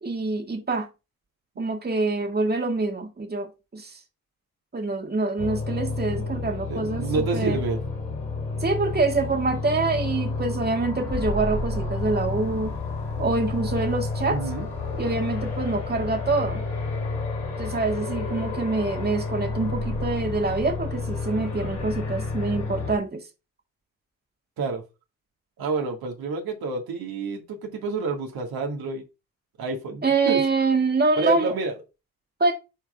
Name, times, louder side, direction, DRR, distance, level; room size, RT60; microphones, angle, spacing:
voice 1, 0.0-0.9 1.6-4.0 4.7-7.1 7.3-7.6 8.6-12.8 13.2-14.4 15.0-16.6 17.6-23.2 30.0-31.5 32.4-32.5, right 3 dB, 25° right, 1.9 m, -25 dB
sound 1, 5.4-23.0, left 3 dB, 80° left, 3.1 m, -30 dB
voice 2, 6.7-7.8 14.3-14.7 24.6-24.8 25.6-29.0 29.6-30.4 31.2-31.8, right 3 dB, 60° right, 2.0 m, -28 dB
9.9 x 4.7 x 2.4 m
hypercardioid pair, 45°, 42 cm